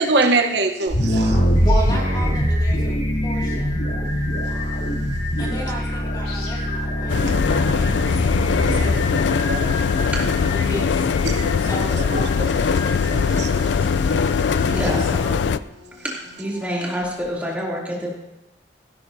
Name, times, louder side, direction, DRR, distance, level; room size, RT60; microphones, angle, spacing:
voice 1, 0.0-1.3 8.7-8.8 9.1-9.9 12.4-12.5 13.1-13.5, right 3 dB, 70° right, 5 dB, 1.0 m, -23 dB
sound 1, 0.9-9.0, equal, 55° left, 2.9 m, -22 dB
Singing, 1.0-17.3, left 2 dB, 40° left, 4.4 m, -36 dB
voice 2, 1.6-3.8 5.4-8.3 8.6-9.2 10.0-11.1 11.6-12.1 14.6-15.5, equal, 25° left, -3 dB, 2.2 m, -33 dB
sound 2, 7.1-15.6, left 5 dB, 80° left, 0.4 m, -21 dB
voice 3, 16.4-18.1, equal, 10° right, -5 dB, 2.7 m, -26 dB
16.0 x 12.5 x 2.7 m, 0.92 s
head